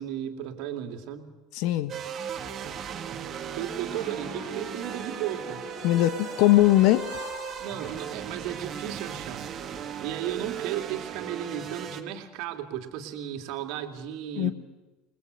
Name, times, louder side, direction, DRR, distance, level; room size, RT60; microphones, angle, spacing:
voice 1, 0.0-1.3 3.6-5.7 7.6-14.5, right 10 dB, 55° right, 6 dB, 2.8 m, -35 dB
voice 2, 1.5-1.9 5.8-7.1 14.4-14.5, left 15 dB, 55° left, 14 dB, 1.5 m, -20 dB
sound 1, 1.9-12.0, right 8 dB, 35° right, 2.3 m, -37 dB
sound 2, 3.9-8.5, left 1 dB, 70° left, 5.7 m, -43 dB
29.5 x 20.5 x 6.8 m, 1.1 s
figure-of-eight pair, 70°, 0 cm